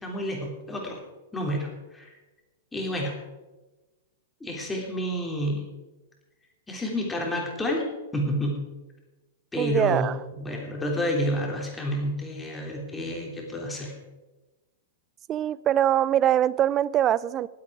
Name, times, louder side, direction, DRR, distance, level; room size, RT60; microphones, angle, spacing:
voice 1, 0.0-1.0 1.3-2.1 2.7-3.2 4.4-5.6 6.7-7.9 8.1-8.6 9.5-13.9, equal, 10° left, -1 dB, 3.3 m, -29 dB
voice 2, 9.6-10.2 15.3-17.5, right 11 dB, 30° right, 21 dB, 0.4 m, -23 dB
19.5 x 8.3 x 4.9 m, 1.1 s
hypercardioid pair, 130°, 0 cm